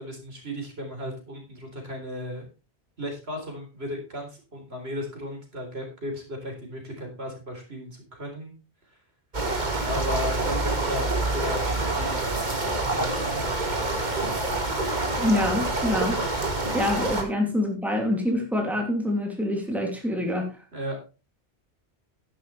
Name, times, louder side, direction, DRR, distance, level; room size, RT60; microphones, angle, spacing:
voice 1, 0.0-2.5 3.0-8.5 9.8-13.2 20.7-21.0, left 1 dB, 70° right, 2 dB, 4.3 m, -35 dB
sound 1, 9.3-17.2, right 2 dB, 45° right, 2.3 m, -27 dB
voice 2, 15.2-16.2 16.7-20.6, left 1 dB, ahead, 1 dB, 2.8 m, -26 dB
11.0 x 11.0 x 3.4 m, 0.31 s
omnidirectional pair, 1.1 m